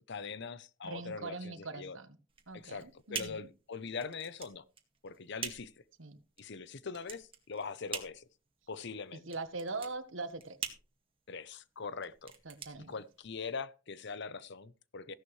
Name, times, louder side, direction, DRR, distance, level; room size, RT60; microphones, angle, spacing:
voice 1, 0.1-2.0 2.5-4.6 5.0-5.7 6.4-8.3 8.7-9.2 11.3-12.3 12.9-15.1, left 5 dB, 60° left, 0.8 m, -42 dB
voice 2, 0.8-2.1 2.5-3.5 6.0-6.2 9.1-10.6 12.4-13.0, right 3 dB, 75° right, 1.4 m, -42 dB
sound 1, 2.3-13.6, right 6 dB, 30° right, 1.9 m, -45 dB
15.5 x 11.0 x 3.2 m
head